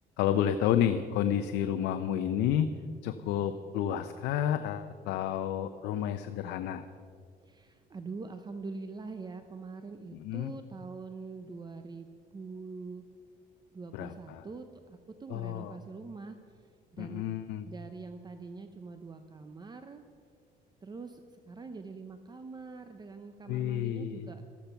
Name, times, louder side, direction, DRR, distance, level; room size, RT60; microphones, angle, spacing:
voice 1, 0.2-2.7 3.0-6.8 10.2-10.5 13.9-14.4 15.3-15.8 17.0-17.7 23.5-24.3, left 10 dB, 85° left, 9 dB, 0.7 m, -30 dB
voice 2, 7.4-13.1 13.7-17.3 17.6-20.0 20.8-24.4, right 4 dB, 25° right, 8 dB, 0.8 m, -44 dB
14.0 x 13.5 x 5.8 m, 2.1 s
cardioid pair, 110°, 17 cm